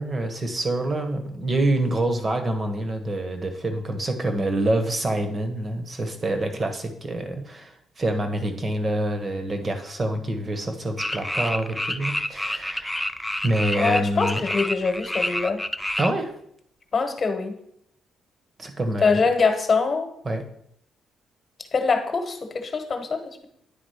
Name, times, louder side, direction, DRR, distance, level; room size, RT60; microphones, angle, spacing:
voice 1, 0.0-13.0 13.4-14.4 16.0-16.3 18.6-19.2 20.2-20.4, right 1 dB, 30° right, 6 dB, 1.2 m, -26 dB
sound 1, 11.0-16.1, left 1 dB, 5° left, 0.4 m, -28 dB
voice 2, 13.7-15.6 16.9-17.5 19.0-20.1 21.7-23.5, left 4 dB, 40° left, 6 dB, 1.2 m, -23 dB
9.6 x 3.6 x 4.9 m, 0.73 s
cardioid pair, 90°, 0 cm